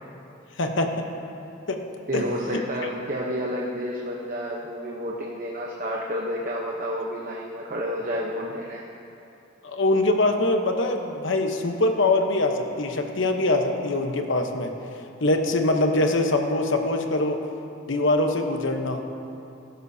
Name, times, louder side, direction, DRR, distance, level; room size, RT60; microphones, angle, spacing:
voice 1, 0.6-0.9 1.7-1.8 2.1-2.2 2.5-2.6 9.6-14.7 15.2-17.4 17.9-19.0, left 2 dB, 70° left, 4 dB, 1.0 m, -23 dB
voice 2, 2.1-8.9, equal, 40° right, -3 dB, 0.9 m, -30 dB
16.0 x 12.5 x 2.8 m, 2.7 s
head